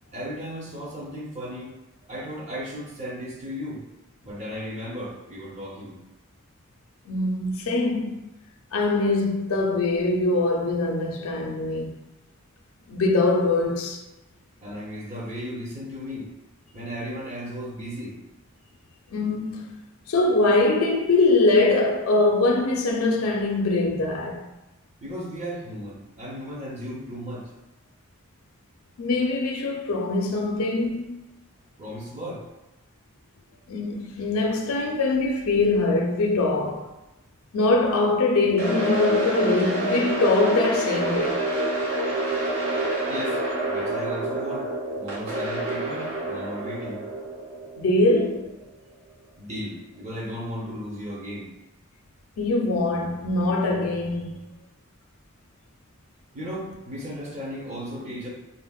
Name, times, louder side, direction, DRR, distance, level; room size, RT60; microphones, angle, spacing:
voice 1, 0.1-1.8 2.1-3.8 4.2-6.0 14.6-16.3 16.7-18.2 25.0-27.5 31.8-32.4 43.1-43.4 43.7-44.7 45.0-47.1 49.4-51.5 56.3-58.3, equal, 35° right, 0.6 m, -35 dB
voice 2, 7.1-8.3 8.7-11.9 12.9-14.0 19.1-19.7 20.1-24.5 29.0-31.2 33.7-36.9 37.5-41.4 47.8-48.6 52.4-54.4, left 2 dB, 80° left, 0.4 m, -23 dB
sound 1, 38.6-48.6, right 1 dB, 85° right, 0.8 m, -28 dB
3.8 x 2.0 x 2.2 m
head